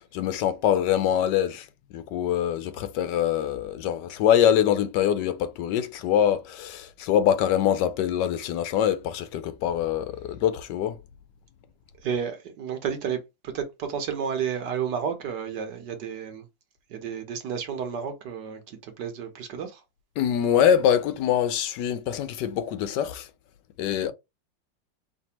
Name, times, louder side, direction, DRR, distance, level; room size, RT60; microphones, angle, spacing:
voice 1, 0.0-11.0 20.2-23.3 23.8-24.1, left 9 dB, 75° left, 1.2 m, -24 dB
voice 2, 12.0-16.4 16.9-19.8 24.0-24.1, right 7 dB, 70° right, 1.5 m, -31 dB
4.5 x 3.3 x 2.9 m
omnidirectional pair, 2.0 m